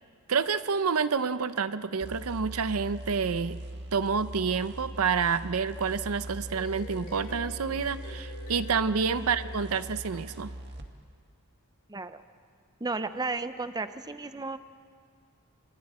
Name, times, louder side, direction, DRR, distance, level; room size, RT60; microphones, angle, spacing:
voice 1, 0.3-3.6 3.9-10.5, right 5 dB, 75° right, 13 dB, 0.7 m, -28 dB
sound 1, 2.0-10.9, right 1 dB, 50° right, 1.8 m, -41 dB
sound 2, 6.5-10.7, left 2 dB, 40° left, 4.1 m, -48 dB
voice 2, 11.9-12.2 12.8-14.6, right 3 dB, 20° right, 11 dB, 0.7 m, -34 dB
29.5 x 28.0 x 4.3 m, 2.1 s
head